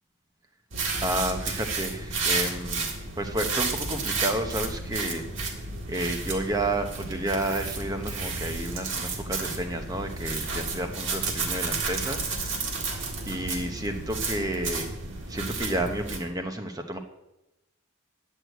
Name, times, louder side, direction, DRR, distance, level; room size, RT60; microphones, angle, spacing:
sound 1, 0.7-16.2, right 3 dB, 60° right, 1.8 m, -32 dB
voice 1, 1.0-2.9 3.2-5.3 5.5-12.7 13.3-14.9 15.3-17.0, right 1 dB, 15° right, 5 dB, 0.8 m, -31 dB
9.6 x 6.5 x 7.8 m, 0.94 s
head